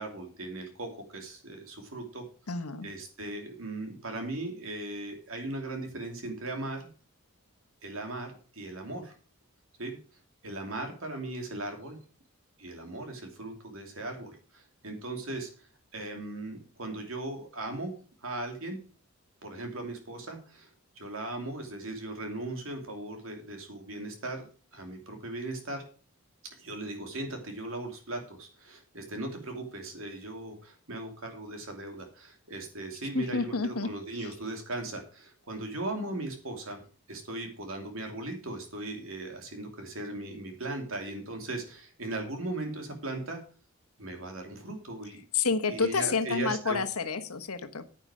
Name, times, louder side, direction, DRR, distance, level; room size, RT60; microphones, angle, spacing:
voice 1, 0.0-2.2 2.8-6.9 7.8-9.1 9.8-10.0 10.4-12.0 12.6-17.9 18.2-18.8 19.4-20.7 21.0-25.8 26.6-36.8 37.1-43.4 44.0-45.2 45.7-46.8, right 2 dB, 65° right, 4 dB, 2.8 m, -38 dB
voice 2, 2.5-2.9 33.1-33.9 45.3-47.9, left 4 dB, 85° left, 10 dB, 1.2 m, -29 dB
9.7 x 9.0 x 5.0 m, 0.39 s
head